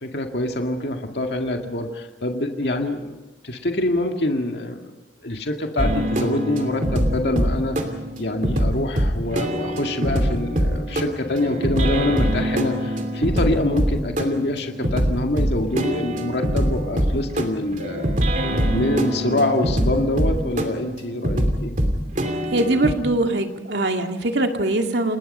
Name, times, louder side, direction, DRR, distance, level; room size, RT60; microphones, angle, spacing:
voice 1, 0.0-3.2 3.4-4.9 5.2-7.8 8.2-18.1 18.4-21.8, left 1 dB, 70° left, 3 dB, 2.1 m, -25 dB
sound 1, 5.8-22.9, equal, 45° right, 2.8 m, -23 dB
voice 2, 22.5-25.2, right 2 dB, 75° right, 4 dB, 2.3 m, -22 dB
29.0 x 20.0 x 5.5 m, 1.1 s
head